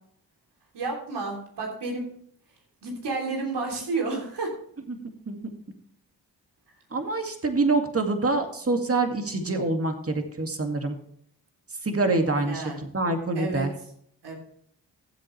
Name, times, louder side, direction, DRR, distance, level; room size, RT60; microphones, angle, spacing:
voice 1, 0.7-2.1 2.8-4.6 12.4-12.8 13.3-13.7 14.2-14.4, right 3 dB, 75° right, 0 dB, 3.4 m, -31 dB
voice 2, 6.9-11.0 11.8-12.6 12.9-13.7, right 3 dB, 35° right, 4 dB, 2.2 m, -25 dB
15.0 x 7.8 x 3.3 m, 0.65 s
supercardioid pair, 45°, 41 cm